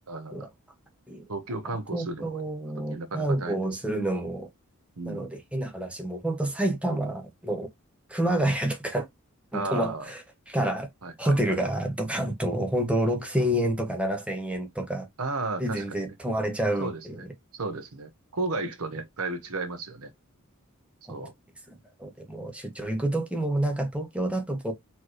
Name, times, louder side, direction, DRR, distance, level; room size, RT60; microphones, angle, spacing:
voice 1, 0.1-0.5 1.3-4.0 5.0-5.3 9.5-10.1 11.0-11.6 15.2-16.0 16.8-17.3 17.5-20.1 21.1-21.3, right 3 dB, 75° right, 1.0 m, -34 dB
voice 2, 1.9-4.5 5.0-7.7 8.1-9.1 9.5-10.2 10.5-10.9 11.2-15.1 15.6-17.2 21.1-21.2 21.7-24.7, right 1 dB, 5° right, 0.9 m, -28 dB
4.3 x 3.1 x 3.1 m
head